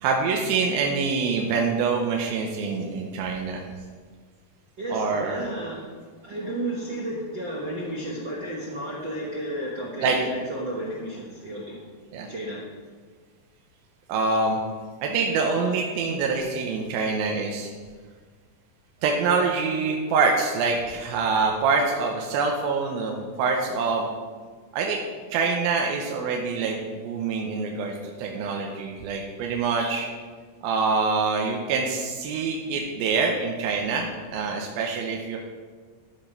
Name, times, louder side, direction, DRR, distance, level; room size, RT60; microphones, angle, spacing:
voice 1, 0.0-3.6 4.9-5.5 10.0-10.2 12.1-12.3 14.1-14.6 15.0-17.7 19.0-24.1 24.7-25.0 25.3-30.1 30.6-35.4, right 4 dB, 85° right, 1 dB, 2.7 m, -25 dB
voice 2, 4.8-5.9 6.2-11.9 12.2-12.6, right 1 dB, 65° right, -4 dB, 1.1 m, -32 dB
13.5 x 5.0 x 5.8 m, 1.5 s
omnidirectional pair, 4.2 m